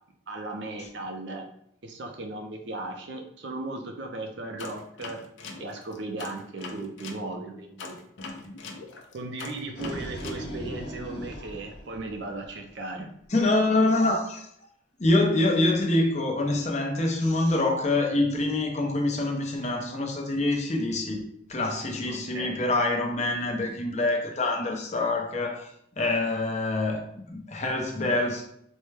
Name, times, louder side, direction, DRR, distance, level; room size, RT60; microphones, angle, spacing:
voice 1, 0.3-1.5 1.8-5.2 5.6-8.0 9.1-13.1 22.0-22.6, right 2 dB, 65° right, 0.6 m, -37 dB
sound 1, 4.6-7.2 7.8-10.4, left 3 dB, 75° left, 0.6 m, -41 dB
sound 2, 9.5-12.7, equal, 55° left, 1.0 m, -38 dB
voice 2, 13.3-14.4 15.0-25.7 26.0-28.4, left 2 dB, 35° left, 0.6 m, -25 dB
4.4 x 2.2 x 3.3 m
head